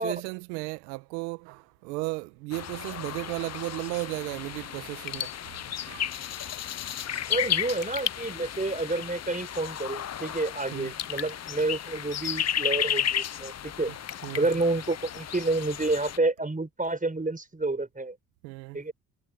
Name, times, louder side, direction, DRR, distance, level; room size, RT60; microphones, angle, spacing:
voice 1, 0.0-6.2 10.7-10.9 14.2-14.5 18.4-18.8, right 24 dB, 85° right, 1.6 m, -35 dB
sound 1, 2.5-16.2, left 9 dB, 35° left, 0.7 m, -33 dB
Raindrop / Drip, 4.9-15.7, left 9 dB, 60° left, 3.5 m, -43 dB
voice 2, 7.3-13.9 14.4-18.1 18.7-18.9, right 2 dB, 15° right, 4.9 m, -29 dB
hypercardioid pair, 50°, 49 cm